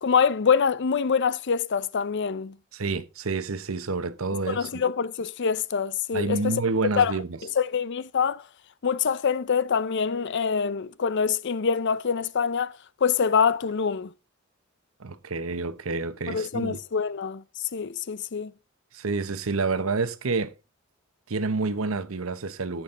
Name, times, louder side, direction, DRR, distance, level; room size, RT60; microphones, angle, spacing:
voice 1, 0.0-2.5 4.5-6.5 7.0-7.1 7.6-8.4 8.8-12.7 13.0-14.1 16.3-17.4 17.7-18.5, left 6 dB, 60° left, 0.5 m, -25 dB
voice 2, 2.7-4.8 6.1-7.4 15.0-16.8 18.9-20.5 21.3-22.8, right 3 dB, 85° right, 0.9 m, -28 dB
14.5 x 6.2 x 3.7 m
head